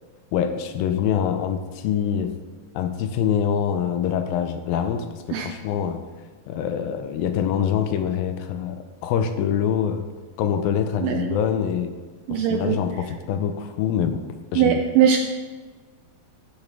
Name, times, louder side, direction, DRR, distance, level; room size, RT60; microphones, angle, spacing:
voice 1, 0.3-2.4 2.8-6.0 6.5-10.1 10.4-11.9 12.3-14.2 14.5-14.8, left 8 dB, 90° left, 8 dB, 2.4 m, -25 dB
voice 2, 11.0-11.4 12.3-12.8 14.6-15.2, right 8 dB, 80° right, 5 dB, 2.1 m, -20 dB
14.5 x 7.2 x 3.5 m, 1.4 s
omnidirectional pair, 4.2 m